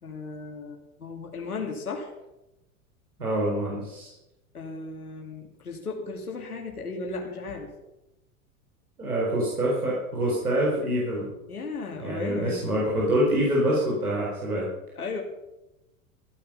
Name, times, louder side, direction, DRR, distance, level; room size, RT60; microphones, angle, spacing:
voice 1, 0.0-2.1 4.5-7.7 11.5-12.8 15.0-15.2, left 3 dB, 90° left, 1 dB, 2.7 m, -35 dB
voice 2, 3.2-4.1 9.0-11.3 12.0-14.7, right 1 dB, 90° right, -4 dB, 4.3 m, -26 dB
15.0 x 10.5 x 5.5 m, 0.94 s
hypercardioid pair, 90°, 43 cm